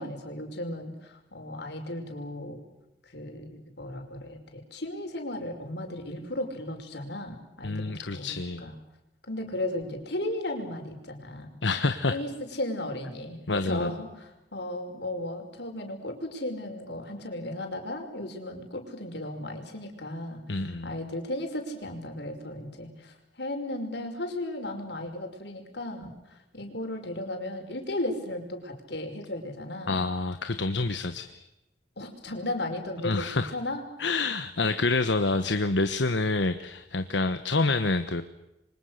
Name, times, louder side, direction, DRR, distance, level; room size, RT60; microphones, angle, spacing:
voice 1, 0.0-2.6 3.1-8.8 9.3-11.6 12.1-30.0 32.0-34.1, left 1 dB, 65° left, 4 dB, 5.8 m, -35 dB
voice 2, 7.6-8.6 11.6-12.2 13.5-13.9 20.5-20.9 29.9-31.5 33.0-33.5 34.0-38.2, left 3 dB, 85° left, 9 dB, 1.3 m, -27 dB
28.5 x 25.0 x 6.7 m, 0.94 s
head